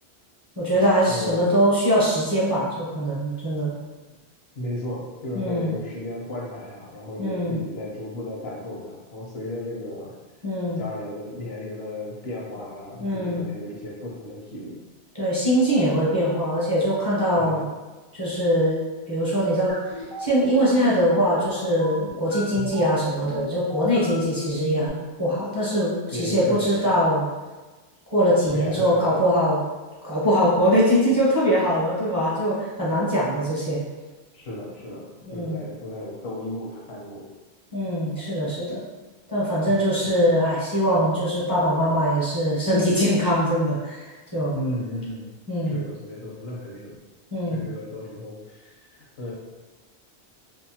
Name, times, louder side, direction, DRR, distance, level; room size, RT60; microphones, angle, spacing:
voice 1, 0.6-3.7 5.3-5.7 7.2-7.6 10.4-10.8 13.0-13.4 15.1-17.6 18.1-18.8 19.1-19.8 20.2-27.3 28.1-29.6 30.0-33.8 35.3-35.6 37.7-38.8 39.3-44.5 45.5-45.8 47.3-47.7, equal, 25° right, -9 dB, 0.5 m, -22 dB
voice 2, 1.1-1.5 4.5-10.1 10.8-14.8 17.4-17.6 26.1-26.9 28.5-29.3 34.3-37.2 39.7-39.8 44.5-45.3 45.7-47.0 47.5-49.3, left 1 dB, 75° left, -4 dB, 0.9 m, -34 dB
sound 1, 19.7-24.9, left 2 dB, 40° left, 0.5 m, -36 dB
2.7 x 2.2 x 2.7 m, 1.2 s
omnidirectional pair, 1.1 m